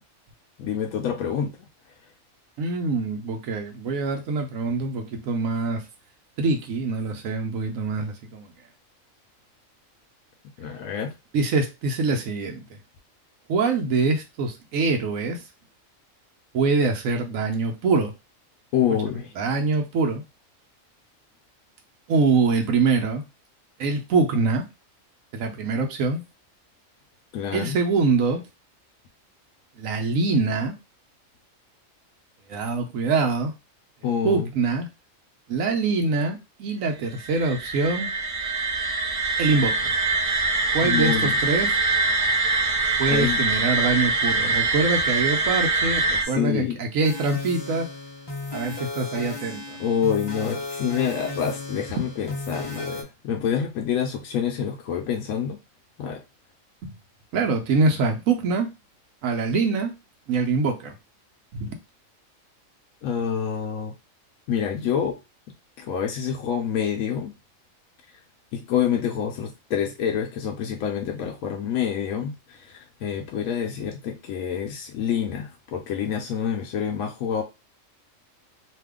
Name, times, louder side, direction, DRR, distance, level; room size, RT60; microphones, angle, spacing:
voice 1, 0.6-1.7 10.6-11.1 18.7-19.3 27.3-27.8 34.0-34.5 40.8-41.4 43.1-43.4 46.2-46.8 49.8-55.6 56.0-56.2 63.0-63.9 64.5-65.2 65.8-67.3 68.5-77.4, left 8 dB, 90° left, 3 dB, 1.0 m, -27 dB
voice 2, 2.6-5.9 6.4-8.5 11.3-12.8 13.5-15.4 16.5-18.1 19.1-20.2 22.1-23.2 23.8-24.7 25.3-26.2 27.5-28.4 29.8-30.7 32.5-33.5 34.2-34.9 35.5-38.1 39.4-39.9 40.7-41.7 43.0-47.9 48.5-49.8 52.0-52.1 56.8-56.9 57.3-58.7 59.2-59.9 60.3-60.9 61.5-61.7, right 4 dB, 80° right, 4 dB, 1.1 m, -24 dB
sound 1, 37.1-46.2, right 3 dB, 45° right, 0.4 m, -24 dB
sound 2, 47.0-53.0, left 2 dB, 25° left, 0.6 m, -35 dB
2.7 x 2.4 x 3.5 m, 0.25 s
omnidirectional pair, 1.4 m